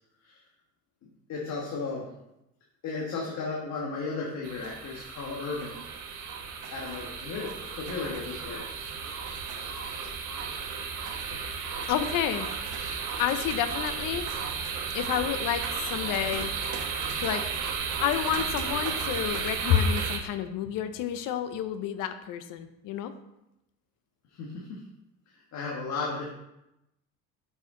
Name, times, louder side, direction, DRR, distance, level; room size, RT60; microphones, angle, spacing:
voice 1, 1.3-2.1 2.8-5.8 6.7-8.6 24.3-24.8 25.5-26.3, left 4 dB, 50° left, -3 dB, 1.5 m, -34 dB
sound 1, 4.4-20.2, right 5 dB, 60° right, 1.2 m, -34 dB
voice 2, 11.9-12.5 12.8-14.3 14.9-16.5 17.2-17.4 18.0-23.1, left 9 dB, 65° left, 11 dB, 0.7 m, -29 dB
6.5 x 6.4 x 3.8 m, 0.88 s
supercardioid pair, 105°, 34 cm